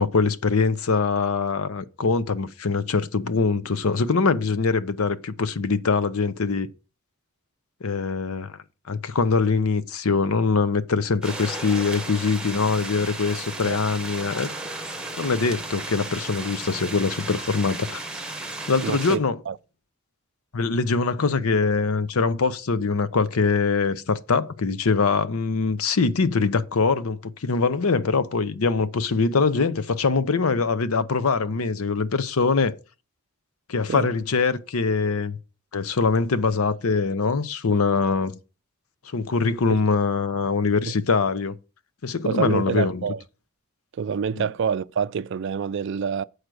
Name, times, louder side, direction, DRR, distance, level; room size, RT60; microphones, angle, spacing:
voice 1, 0.0-6.7 7.8-8.6 8.9-14.5 15.2-18.0 18.7-19.4 20.5-32.8 33.7-35.4 35.7-38.4 39.0-41.5 42.0-43.1 44.4-44.5, left 4 dB, 85° left, 0.7 m, -23 dB
sound 1, 11.2-19.2, right 2 dB, 5° right, 0.8 m, -34 dB
voice 2, 18.8-19.2 19.5-19.6 33.9-34.1 39.7-39.8 40.9-41.0 42.2-43.2 44.0-46.2, right 6 dB, 55° right, 0.3 m, -26 dB
7.9 x 4.9 x 6.2 m
head